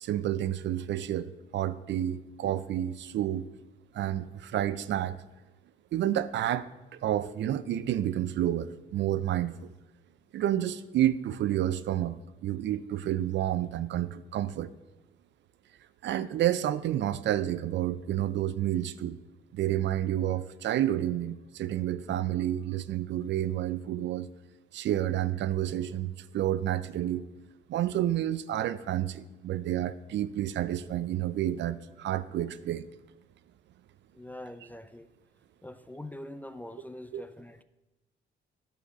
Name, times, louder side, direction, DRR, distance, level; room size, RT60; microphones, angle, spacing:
voice 1, 0.0-3.4 3.9-5.2 5.9-6.7 7.0-9.7 10.3-12.2 12.4-14.7 16.0-19.2 19.5-24.3 24.7-27.2 27.7-32.8 37.1-37.2, right 12 dB, 65° right, 0.4 m, -30 dB
voice 2, 34.1-35.1 35.6-37.6, left 1 dB, 10° left, 0.3 m, -44 dB
10.0 x 4.3 x 5.2 m
cardioid pair, 90°, 20 cm